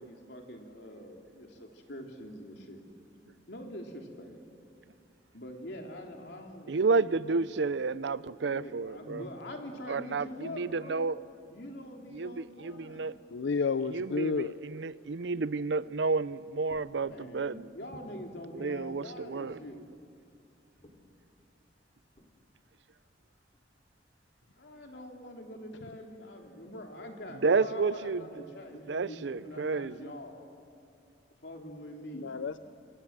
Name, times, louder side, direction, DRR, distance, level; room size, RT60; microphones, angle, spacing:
voice 1, 0.0-2.8 3.5-4.4 5.3-7.4 8.4-11.0 11.5-13.1 17.0-19.9 24.6-30.4 31.4-32.3, left 1 dB, 65° left, 3.3 m, -44 dB
voice 2, 6.7-9.3 9.9-11.2 12.1-13.2 13.9-17.7 18.5-19.6 27.4-28.5 28.9-30.1, right 4 dB, 70° right, 0.5 m, -31 dB
voice 3, 13.3-14.6 32.1-32.6, left 4 dB, 80° left, 0.5 m, -31 dB
sound 1, 16.6-24.1, equal, 35° left, 2.9 m, -61 dB
26.5 x 25.0 x 7.4 m
head